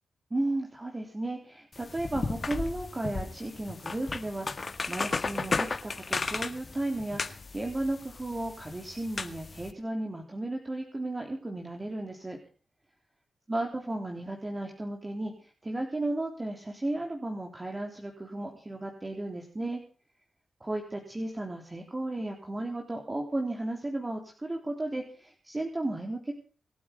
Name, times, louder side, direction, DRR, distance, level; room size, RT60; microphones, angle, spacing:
voice 1, 0.3-12.4 13.5-19.8 20.6-26.3, right 2 dB, 30° right, 2 dB, 3.4 m, -34 dB
sound 1, 1.7-9.7, left 4 dB, 50° left, 1.8 m, -35 dB
25.5 x 8.6 x 5.3 m, 0.39 s
supercardioid pair, 40°, 0 cm